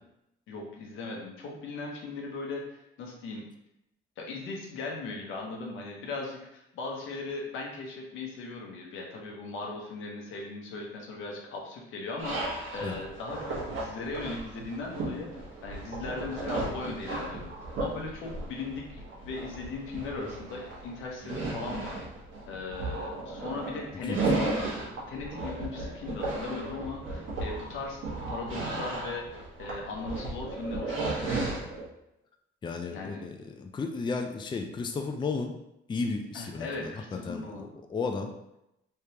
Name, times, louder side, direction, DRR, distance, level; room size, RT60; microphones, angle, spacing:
voice 1, 0.5-3.4 4.2-17.5 17.8-22.0 22.5-28.0 28.3-29.3 29.6-31.4 32.9-33.2 36.3-37.7, left 3 dB, 85° left, 0 dB, 0.9 m, -38 dB
sound 1, 12.2-31.8, right 2 dB, 75° right, 1.3 m, -35 dB
voice 2, 24.0-24.5 32.6-35.6 35.9-36.9 37.3-38.3, left 4 dB, 25° left, 4 dB, 0.4 m, -34 dB
3.3 x 3.3 x 2.8 m, 0.85 s
cardioid pair, 90°, 20 cm